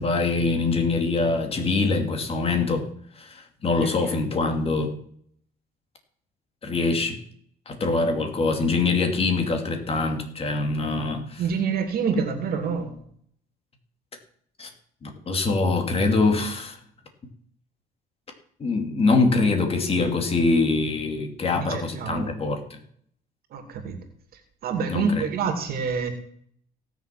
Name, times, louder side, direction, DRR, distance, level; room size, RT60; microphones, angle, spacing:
voice 1, 0.0-2.9 3.1-4.9 6.6-7.2 7.7-11.4 14.6-14.7 15.0-16.8 18.6-22.8 24.9-25.2, left 3 dB, 35° left, 5 dB, 2.6 m, -24 dB
voice 2, 11.4-12.9 21.5-22.3 23.5-24.0 24.3-26.1, right 5 dB, 65° right, 6 dB, 2.7 m, -27 dB
17.0 x 6.9 x 6.0 m, 0.63 s
cardioid pair, 110°, 17 cm